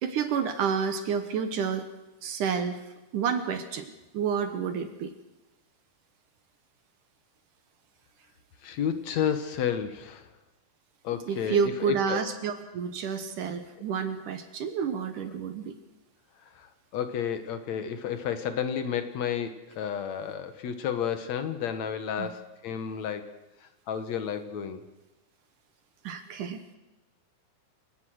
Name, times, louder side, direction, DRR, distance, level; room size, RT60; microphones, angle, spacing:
voice 1, 0.0-1.9 2.2-2.8 3.1-3.9 4.1-5.1 11.3-15.8 22.2-22.3 26.0-26.6, right 6 dB, 65° right, 9 dB, 2.5 m, -29 dB
voice 2, 8.6-10.3 11.0-12.3 16.4-23.3 23.6-24.8, left 8 dB, 60° left, 9 dB, 2.3 m, -32 dB
28.0 x 16.5 x 6.4 m, 1.0 s
omnidirectional pair, 4.2 m